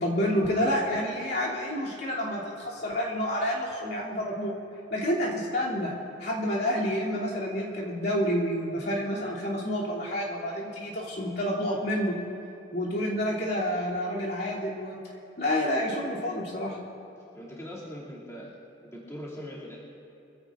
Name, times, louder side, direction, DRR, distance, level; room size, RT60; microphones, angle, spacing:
voice 1, 0.0-4.5 4.9-5.9 6.2-12.1 12.7-15.0 15.4-16.8, equal, 55° left, -6 dB, 2.8 m, -29 dB
voice 2, 17.3-18.6 18.8-19.8, equal, 15° left, -7 dB, 2.6 m, -41 dB
23.5 x 16.0 x 2.5 m, 2.8 s
head